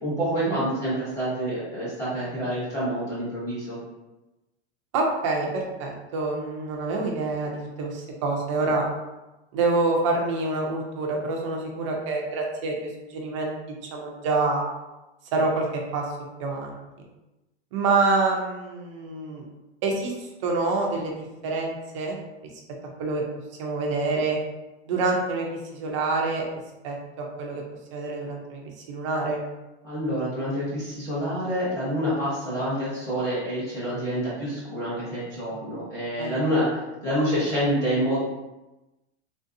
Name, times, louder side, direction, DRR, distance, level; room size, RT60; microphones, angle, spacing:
voice 1, 0.0-3.8 29.8-36.7 37.0-38.2, equal, 10° left, -10 dB, 0.8 m, -27 dB
voice 2, 4.9-8.8 9.5-12.7 13.1-14.7 15.3-16.0 16.4-16.7 17.7-19.4 19.8-22.2 23.0-23.2 23.6-24.4 24.9-26.4 26.8-27.6 27.9-29.4 36.2-36.4, right 3 dB, 30° right, 0 dB, 0.4 m, -27 dB
3.3 x 2.6 x 2.5 m, 1.0 s
supercardioid pair, 160°, 34 cm